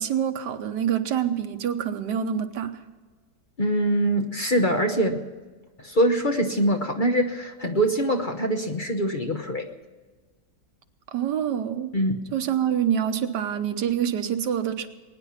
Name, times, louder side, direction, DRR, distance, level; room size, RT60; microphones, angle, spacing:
voice 1, 0.0-2.7 11.1-11.9 12.3-14.9, right 9 dB, 85° right, 9 dB, 1.6 m, -26 dB
voice 2, 3.6-5.2 5.8-9.7 11.9-12.2, right 1 dB, 35° left, 4 dB, 0.9 m, -23 dB
21.5 x 9.9 x 5.7 m, 1.4 s
omnidirectional pair, 1.8 m